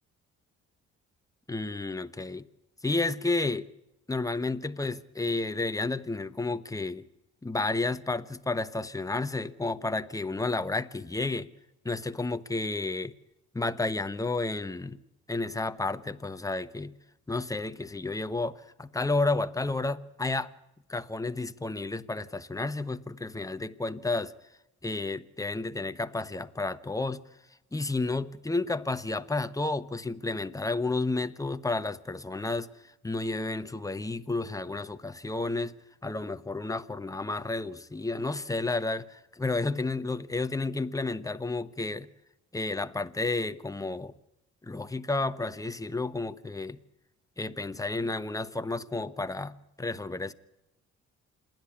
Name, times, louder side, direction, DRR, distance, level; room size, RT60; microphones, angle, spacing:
voice 1, 1.5-2.5 2.8-3.7 4.1-7.0 7.4-11.5 11.8-13.1 13.5-15.0 15.3-16.9 17.3-20.5 20.9-24.3 24.8-27.2 27.7-32.7 33.0-35.7 36.0-42.1 42.5-44.1 44.6-46.8 47.4-50.3, left 3 dB, 10° left, 1.1 m, -31 dB
27.5 x 10.5 x 9.6 m
cardioid pair, 90°, 30 cm